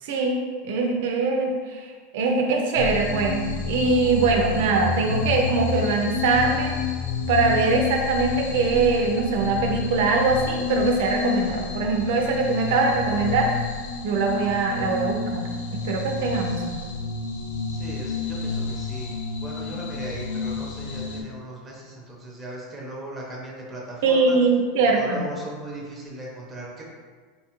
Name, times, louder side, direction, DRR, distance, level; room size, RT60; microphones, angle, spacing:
voice 1, 0.0-6.7 7.3-13.5 14.0-15.5 15.8-16.8 24.0-25.3, right 4 dB, 65° right, 2 dB, 0.4 m, -22 dB
Slowing Down from Warp Speed, 2.8-21.2, left 5 dB, 75° left, 0.5 m, -29 dB
voice 2, 17.7-24.4 24.8-26.8, right 1 dB, 10° right, -3 dB, 0.6 m, -38 dB
3.8 x 2.3 x 2.8 m, 1.5 s
supercardioid pair, 160°, 0 cm